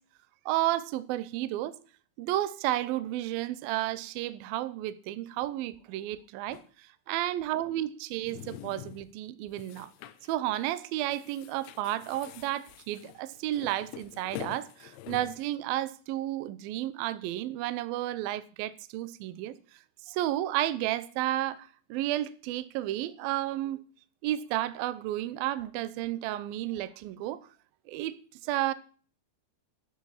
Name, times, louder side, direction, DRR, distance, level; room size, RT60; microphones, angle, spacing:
voice 1, 0.5-1.8 2.2-9.9 10.3-19.6 20.1-23.8 24.2-27.4 27.9-28.7, right 14 dB, 80° right, 2.1 m, -32 dB
sound 1, 6.5-6.7 8.1-9.1 9.5-10.4 10.7-10.8 11.1-15.5, left 13 dB, 85° left, 3.0 m, -46 dB
11.5 x 7.4 x 7.2 m
omnidirectional pair, 5.3 m